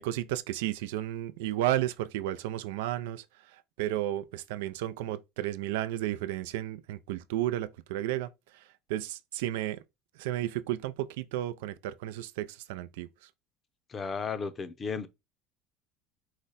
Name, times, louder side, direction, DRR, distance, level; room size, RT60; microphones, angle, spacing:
voice 1, 0.0-3.2 3.8-8.6 8.9-9.8 10.2-13.1, right 13 dB, 85° right, 0.4 m, -33 dB
voice 2, 13.9-15.1, left 5 dB, 25° left, 0.6 m, -34 dB
4.9 x 2.2 x 4.0 m
supercardioid pair, 135°, 0 cm